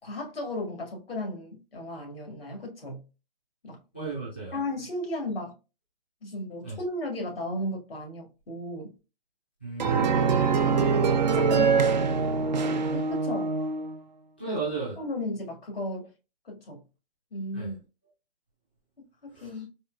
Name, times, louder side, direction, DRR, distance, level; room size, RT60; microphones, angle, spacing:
voice 1, 0.0-3.0 3.6-3.8 4.5-5.5 6.2-8.9 11.3-11.9 12.9-13.5 14.5-14.6 15.0-16.1 16.5-16.8 17.3-17.7 19.2-19.7, left 1 dB, 75° left, 1.8 m, -35 dB
voice 2, 3.9-4.6 6.6-6.8 9.6-10.4 14.4-15.0 17.5-17.7 19.3-19.6, right 4 dB, 10° left, 0.4 m, -35 dB
sound 1, 9.8-14.0, right 5 dB, 50° right, 0.5 m, -24 dB
4.2 x 2.3 x 2.3 m
hypercardioid pair, 160°, 29 cm